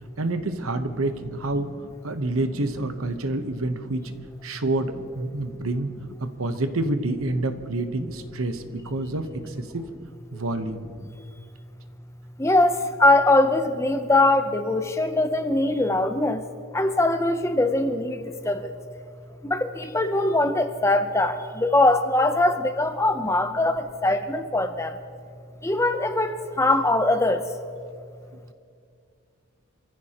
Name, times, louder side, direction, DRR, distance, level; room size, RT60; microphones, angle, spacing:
voice 1, 0.2-1.7 2.0-4.1 4.4-5.9 6.2-9.9 10.3-10.9, right 2 dB, 75° right, 8 dB, 1.0 m, -28 dB
voice 2, 12.4-16.4 16.7-18.7 19.4-25.0 25.6-27.4, left 2 dB, 15° left, 8 dB, 0.6 m, -22 dB
27.0 x 15.0 x 3.0 m, 2.3 s
head